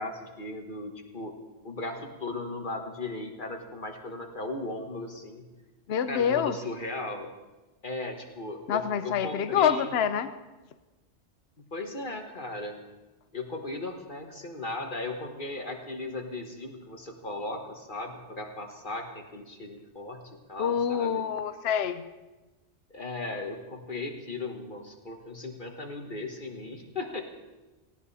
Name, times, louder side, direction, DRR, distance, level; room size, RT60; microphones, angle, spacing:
voice 1, 0.0-1.4 1.6-5.5 6.1-7.3 7.8-9.9 11.6-12.8 13.3-21.3 22.9-27.2, left 2 dB, 45° left, 3 dB, 1.6 m, -37 dB
voice 2, 5.9-6.6 8.7-10.3 20.6-22.0, left 8 dB, 65° left, 11 dB, 0.9 m, -26 dB
19.0 x 16.5 x 4.2 m, 1.1 s
omnidirectional pair, 1.2 m